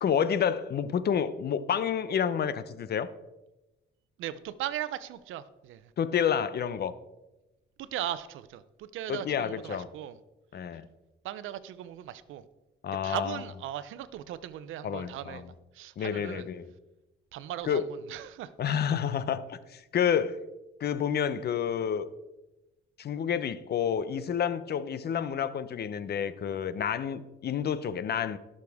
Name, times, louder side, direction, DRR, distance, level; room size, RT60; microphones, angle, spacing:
voice 1, 0.0-3.1 6.0-6.9 9.1-9.9 10.5-10.9 12.8-13.4 14.8-15.5 16.0-16.7 17.7-17.8 18.6-20.4 20.8-22.1 23.0-28.4, left 8 dB, 55° left, 14 dB, 0.7 m, -29 dB
voice 2, 4.2-5.9 7.8-10.2 11.2-12.5 13.0-15.4 15.7-16.5 17.3-18.5, right 12 dB, 85° right, 15 dB, 0.6 m, -38 dB
18.0 x 6.5 x 3.6 m, 1.0 s
cardioid pair, 90°, 20 cm